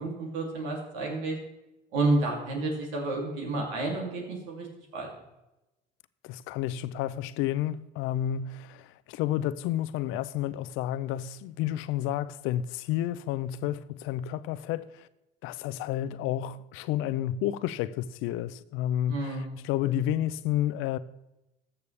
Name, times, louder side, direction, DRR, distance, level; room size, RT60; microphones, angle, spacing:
voice 1, 0.0-1.4 1.9-4.7 4.9-5.1 19.1-19.6, right 2 dB, 85° right, 2.7 m, -30 dB
voice 2, 6.2-15.1 15.4-21.0, left 12 dB, 75° left, 0.5 m, -31 dB
14.0 x 6.8 x 3.3 m
supercardioid pair, 70°, 21 cm